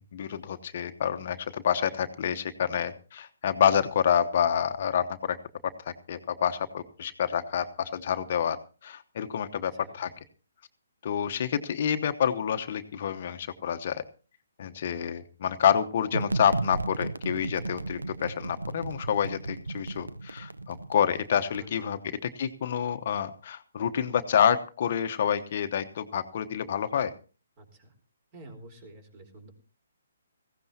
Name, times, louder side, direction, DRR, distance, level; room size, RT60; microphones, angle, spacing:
voice 1, 0.0-5.4 6.1-8.6 8.8-10.1 11.0-14.0 14.6-27.1, left 8 dB, 50° left, 9 dB, 0.9 m, -28 dB
sound 1, 16.1-21.6, right 2 dB, 90° right, 0.7 m, -35 dB
voice 2, 21.6-22.0 27.6-27.9 28.3-29.5, right 1 dB, 35° right, 7 dB, 4.2 m, -49 dB
19.0 x 16.0 x 2.8 m, 0.35 s
figure-of-eight pair, 140°, 0 cm